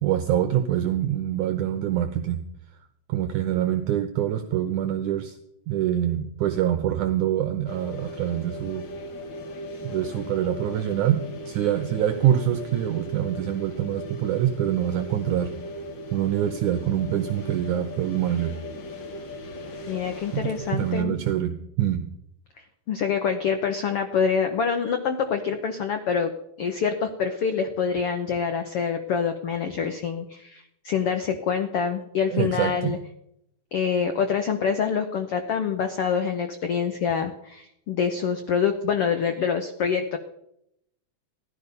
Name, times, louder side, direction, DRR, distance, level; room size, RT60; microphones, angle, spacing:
voice 1, 0.0-2.4 3.1-5.4 5.7-8.8 9.8-15.5 16.1-18.6 20.3-22.1 32.3-32.9, right 11 dB, 70° right, 8 dB, 2.1 m, -25 dB
sound 1, 7.7-21.0, equal, 45° left, 1.6 m, -38 dB
voice 2, 19.9-21.2 22.9-26.3 26.6-33.0 33.7-40.2, left 6 dB, 80° left, 6 dB, 1.3 m, -26 dB
16.5 x 12.5 x 5.3 m, 0.77 s
omnidirectional pair, 4.1 m